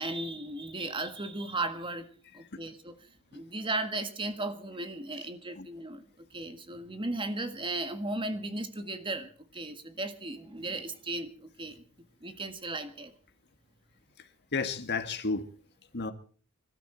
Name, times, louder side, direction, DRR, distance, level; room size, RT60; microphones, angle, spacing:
voice 1, 0.0-2.1 2.3-3.0 3.3-11.8 12.2-13.1, right 2 dB, 25° right, 1.6 m, -36 dB
voice 2, 14.2-15.5 15.9-16.1, left 4 dB, 50° left, 1.7 m, -33 dB
25.0 x 12.5 x 4.4 m
head